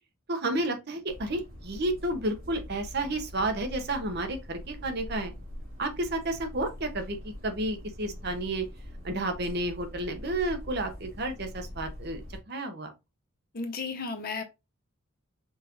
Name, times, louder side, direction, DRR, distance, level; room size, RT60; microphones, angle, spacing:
voice 1, 0.3-5.3 5.8-8.6 9.0-12.2 12.5-12.9, right 1 dB, 50° right, 0.8 m, -31 dB
sound 1, 1.1-12.4, left 1 dB, 75° right, 2.8 m, -43 dB
voice 2, 13.5-14.4, left 4 dB, 45° left, 0.7 m, -33 dB
5.4 x 2.5 x 2.9 m
head